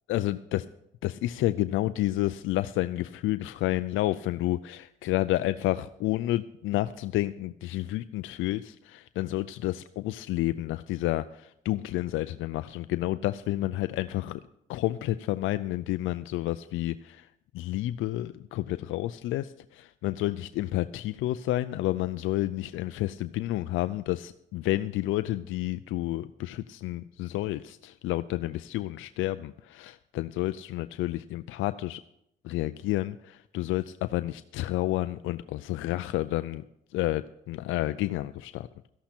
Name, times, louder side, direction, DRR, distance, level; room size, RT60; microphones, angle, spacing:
voice 1, 0.1-0.7 1.0-14.4 14.7-17.3 17.5-32.0 32.4-36.6 36.9-38.7, left 15 dB, 85° left, 12 dB, 0.4 m, -30 dB
13.5 x 11.5 x 4.4 m, 0.78 s
cardioid pair, 90°, 20 cm